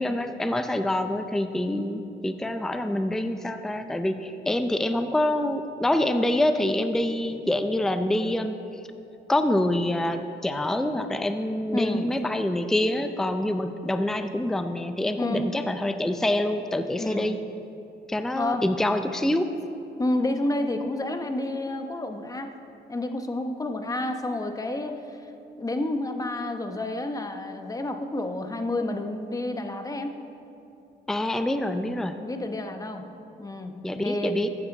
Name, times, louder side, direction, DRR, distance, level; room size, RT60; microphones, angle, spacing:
voice 1, 0.0-8.6 9.3-17.4 18.1-19.5 31.1-32.2 33.8-34.5, left 1 dB, ahead, 9 dB, 0.5 m, -26 dB
voice 2, 11.7-12.1 15.2-15.5 17.0-17.4 18.4-18.6 19.5-19.7 20.0-22.5 22.9-25.2 25.6-30.1 32.2-33.0 33.4-34.4, left 2 dB, 15° left, 6 dB, 0.9 m, -30 dB
14.5 x 8.6 x 4.0 m, 2.7 s
cardioid pair, 90°, 20 cm